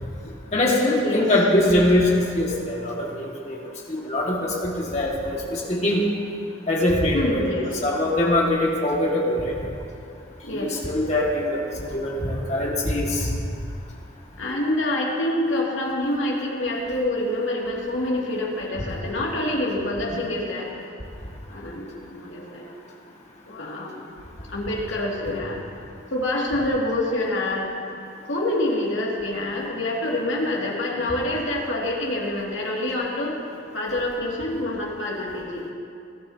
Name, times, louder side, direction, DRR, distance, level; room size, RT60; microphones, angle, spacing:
voice 1, 0.5-3.6 3.9-6.0 6.7-7.5 7.8-9.6 10.5-13.3, left 1 dB, 35° left, -3 dB, 1.9 m, -22 dB
voice 2, 7.1-7.7 10.4-10.8 14.4-20.7 21.5-22.6 23.5-24.1 24.5-25.6 26.1-27.7 28.3-33.4 33.7-35.6, left 1 dB, 85° left, -3 dB, 2.3 m, -26 dB
20.5 x 12.0 x 2.8 m, 2.4 s
head